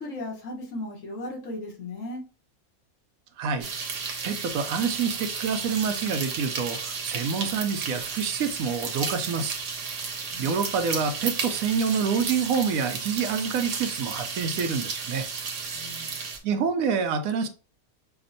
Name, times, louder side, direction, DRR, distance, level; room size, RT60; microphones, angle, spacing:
voice 1, 0.0-2.2 10.3-10.6 15.7-16.3, left 2 dB, 70° left, -1 dB, 1.4 m, -36 dB
voice 2, 3.4-3.7 4.2-9.6 10.4-15.3 16.4-17.5, right 6 dB, 85° right, 8 dB, 1.0 m, -27 dB
sound 1, 3.6-16.4, right 5 dB, 65° right, 1.1 m, -33 dB
5.8 x 2.1 x 2.6 m, 0.36 s
omnidirectional pair, 1.4 m